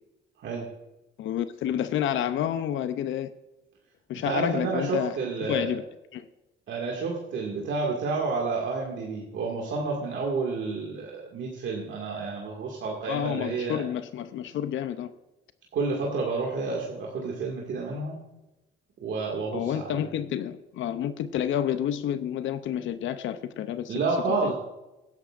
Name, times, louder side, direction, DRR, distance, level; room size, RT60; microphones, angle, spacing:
voice 1, 1.2-3.3 4.1-5.2 5.5-5.8 6.1-6.3 13.1-15.1 19.5-23.9 24.3-24.5, left 10 dB, 75° left, 12 dB, 0.6 m, -29 dB
voice 2, 4.1-5.8 6.7-13.8 15.7-18.2 19.0-20.0 23.9-24.5, right 4 dB, 70° right, -2 dB, 2.1 m, -30 dB
15.5 x 10.5 x 2.5 m, 0.99 s
cardioid pair, 90°, 20 cm